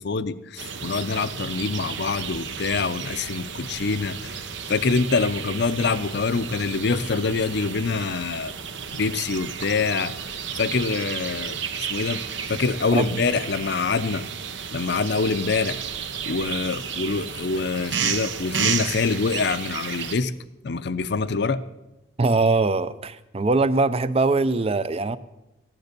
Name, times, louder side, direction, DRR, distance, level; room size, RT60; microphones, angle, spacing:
voice 1, 0.0-8.5 8.9-10.1 10.6-12.2 12.5-14.2 14.7-15.8 16.3-20.3 20.6-21.6, left 4 dB, 55° left, 0.6 m, -25 dB
sound 1, 0.6-20.2, right 7 dB, 65° right, 0.9 m, -32 dB
voice 2, 22.2-25.2, right 3 dB, 30° right, 0.5 m, -22 dB
14.5 x 10.5 x 6.6 m
head